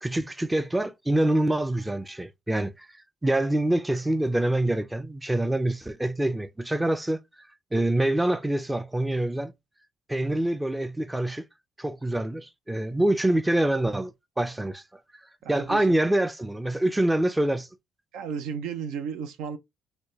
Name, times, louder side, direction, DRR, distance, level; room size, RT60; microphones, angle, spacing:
voice 1, 0.0-2.9 3.2-7.2 7.7-9.5 10.1-11.4 11.8-14.8 15.5-17.7, right 1 dB, 10° right, 0.4 m, -25 dB
voice 2, 15.4-16.0 18.1-19.6, right 6 dB, 80° right, 0.5 m, -34 dB
4.1 x 2.2 x 3.0 m
supercardioid pair, 70°, 0 cm